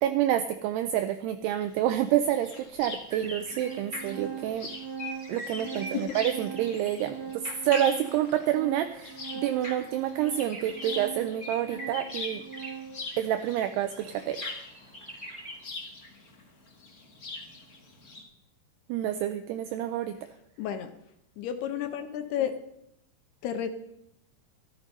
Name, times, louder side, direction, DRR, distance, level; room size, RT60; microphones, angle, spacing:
voice 1, 0.0-4.7 5.3-7.2 7.6-12.4 13.2-14.5 18.9-20.2, right 11 dB, 85° right, 9 dB, 2.4 m, -28 dB
sound 1, 1.6-18.2, left 3 dB, 55° left, 0.9 m, -43 dB
Organ, 1.8-1.9 2.8-2.9 3.2-13.1, right 7 dB, 30° right, 2.1 m, -41 dB
sound 2, 3.1-7.2 7.4-12.8 13.1-13.6 13.9-15.6, equal, 5° right, 3.2 m, -44 dB
voice 2, 5.6-6.2 20.6-20.9 21.4-22.5 23.4-23.7, left 9 dB, 75° left, 9 dB, 2.5 m, -32 dB
13.5 x 12.0 x 5.4 m, 0.79 s
omnidirectional pair, 5.4 m